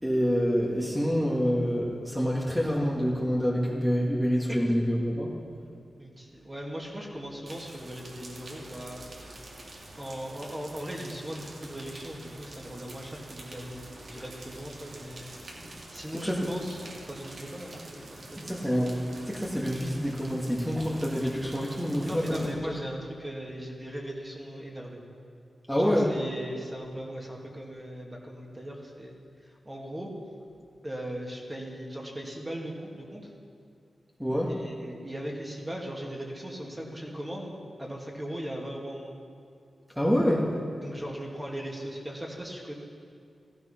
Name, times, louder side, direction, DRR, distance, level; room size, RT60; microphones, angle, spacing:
voice 1, 0.0-5.3 16.2-16.5 18.5-19.0 19.2-22.7 25.7-26.1 34.2-34.5 40.0-40.5, equal, ahead, -5 dB, 1.9 m, -27 dB
voice 2, 6.0-9.0 10.0-13.8 14.1-15.3 15.9-18.5 22.0-25.0 25.8-30.1 30.8-33.3 34.5-37.5 37.8-39.1 40.8-42.7, right 1 dB, 15° right, -1 dB, 2.3 m, -39 dB
sound 1, 7.4-22.5, right 2 dB, 60° right, 2.6 m, -46 dB
15.0 x 13.0 x 5.8 m, 2.2 s
wide cardioid pair, 90°, 0 cm